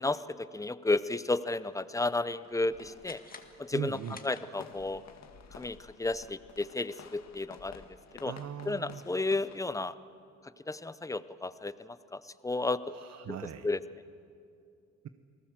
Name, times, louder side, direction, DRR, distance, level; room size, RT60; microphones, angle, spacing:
voice 1, 0.0-3.2 3.6-4.0 4.2-5.0 5.5-7.8 8.2-8.3 8.7-9.9 10.7-12.9 13.3-13.4 13.6-13.8, left 2 dB, 10° left, 15 dB, 0.7 m, -32 dB
sound 1, 1.7-9.6, left 6 dB, 60° left, 1.8 m, -53 dB
sound 2, 3.0-5.0, left 4 dB, 30° left, 2.0 m, -52 dB
voice 2, 3.7-4.2 8.2-9.0 12.9-13.7, right 9 dB, 60° right, 10 dB, 1.0 m, -39 dB
28.5 x 19.0 x 7.6 m, 2.5 s
cardioid pair, 90°, 30 cm